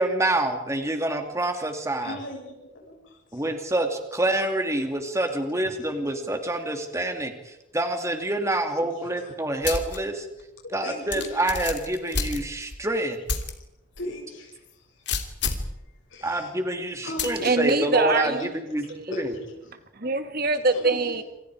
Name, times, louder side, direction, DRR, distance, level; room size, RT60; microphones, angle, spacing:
voice 1, 0.0-2.2 3.3-10.3 10.7-13.2 16.2-18.4 18.7-19.3, right 1 dB, 15° right, 5 dB, 2.7 m, -27 dB
voice 2, 2.0-3.5 9.2-9.3 10.8-11.4 14.0-14.6 15.5-15.6 16.1-16.5 17.0-17.8 18.0-18.5 19.1-19.7 20.7-21.0, left 1 dB, 75° left, -1 dB, 7.0 m, -37 dB
sound 1, 9.6-10.0 10.4-10.5 11.1-12.8 13.3-13.5 14.0-14.1 15.1-15.7 17.2-17.5, left 5 dB, 60° left, 2.8 m, -29 dB
voice 3, 17.4-18.4 18.9-19.1 20.0-21.2, right 3 dB, 50° right, 9 dB, 2.0 m, -23 dB
27.5 x 27.0 x 5.0 m, 0.90 s
head